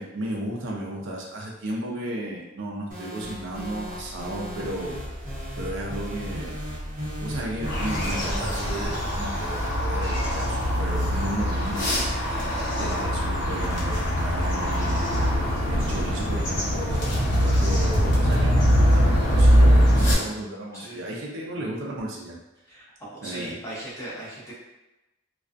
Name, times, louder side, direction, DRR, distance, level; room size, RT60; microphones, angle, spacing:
voice 1, 0.0-5.0 5.5-6.5 7.2-12.2 12.8-15.1 15.6-22.4 23.2-23.6, right 1 dB, 65° right, -2 dB, 0.5 m, -34 dB
sound 1, 2.9-9.8, equal, 45° right, 1.0 m, -35 dB
sound 2, 7.6-20.1, equal, 65° left, 0.8 m, -22 dB
voice 2, 23.1-24.5, right 1 dB, 15° left, -9 dB, 0.9 m, -38 dB
2.3 x 2.3 x 2.4 m, 0.99 s
head